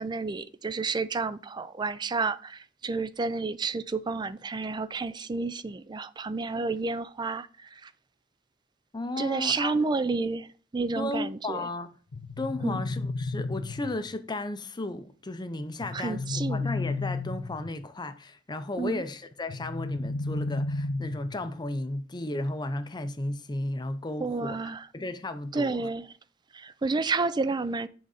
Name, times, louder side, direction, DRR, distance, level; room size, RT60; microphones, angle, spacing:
voice 1, 0.0-7.9 9.2-11.7 12.6-12.8 15.9-16.7 18.7-19.0 24.2-24.9 25.5-26.1 26.5-27.9, right 3 dB, 20° right, 0.4 m, -30 dB
voice 2, 8.9-9.7 11.0-11.9 12.4-25.9, left 2 dB, 20° left, 0.6 m, -34 dB
sound 1, 12.1-14.1 15.8-17.8 19.5-21.5, left 3 dB, 65° left, 0.6 m, -33 dB
7.8 x 3.9 x 4.9 m
head